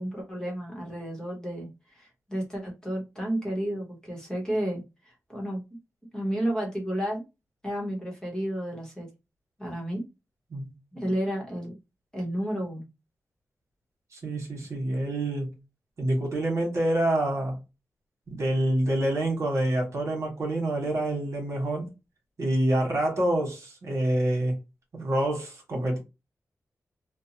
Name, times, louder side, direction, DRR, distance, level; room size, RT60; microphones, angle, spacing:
voice 1, 0.0-5.6 6.1-7.2 7.6-9.1 9.6-10.0 10.9-11.8 12.1-12.8, right 1 dB, 15° left, 1.1 m, -32 dB
voice 2, 14.1-15.5 16.0-17.6 18.3-21.9 22.4-24.6 24.9-26.0, right 1 dB, 60° right, 1.3 m, -27 dB
2.7 x 2.2 x 2.8 m
wide cardioid pair, 130°, 6 cm